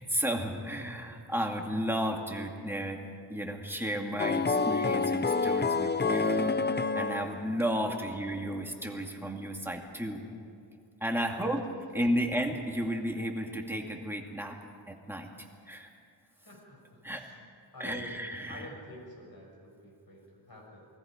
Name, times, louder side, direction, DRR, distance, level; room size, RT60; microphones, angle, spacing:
voice 1, 0.0-3.0 3.3-6.6 7.0-10.2 11.0-11.6 11.9-14.6 14.9-15.3 15.7-15.9 17.0-17.2 17.8-18.7, equal, 5° right, 1 dB, 2.3 m, -33 dB
sound 1, 4.2-7.6, left 4 dB, 25° left, 0.5 m, -28 dB
voice 2, 7.8-8.1 11.2-11.4 11.8-12.3 16.4-17.3 17.7-18.1 18.5-20.9, left 1 dB, 50° left, -1 dB, 6.7 m, -49 dB
28.0 x 20.5 x 5.2 m, 2.4 s
wide cardioid pair, 130°, 47 cm